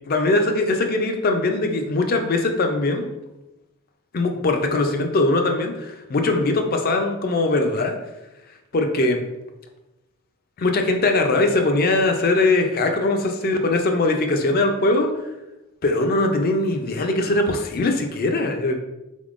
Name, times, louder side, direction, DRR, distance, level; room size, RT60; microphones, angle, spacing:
voice 1, 0.1-3.1 4.1-8.0 8.7-9.2 10.6-15.1 15.8-18.8, left 2 dB, 45° left, 5 dB, 0.4 m, -21 dB
3.8 x 3.5 x 2.5 m, 0.97 s
head